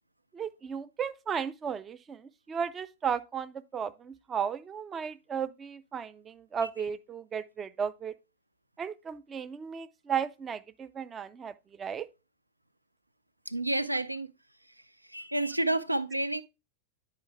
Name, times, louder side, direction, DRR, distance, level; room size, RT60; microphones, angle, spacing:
voice 1, 0.3-8.1 8.8-12.1, right 7 dB, 20° right, 0.5 m, -35 dB
voice 2, 13.5-14.3 15.0-16.4, right 1 dB, 85° right, 0.3 m, -30 dB
10.0 x 4.7 x 3.3 m
figure-of-eight pair, 90°, 0 cm